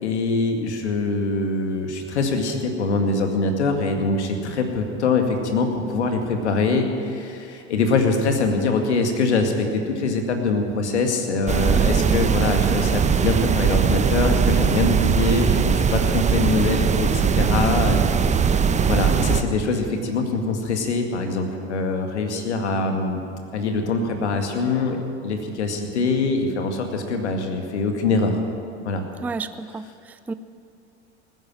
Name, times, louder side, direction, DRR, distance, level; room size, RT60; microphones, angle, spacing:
voice 1, 0.0-18.0 18.9-23.2 23.5-25.0 25.2-28.4 28.9-29.0, left 3 dB, 80° left, 4 dB, 2.1 m, -23 dB
sound 1, 11.5-19.4, right 6 dB, 20° right, 0.9 m, -20 dB
voice 2, 11.7-12.3 29.2-30.3, right 3 dB, 5° right, 13 dB, 0.4 m, -31 dB
19.0 x 10.0 x 7.5 m, 2.6 s
hypercardioid pair, 75°, 34 cm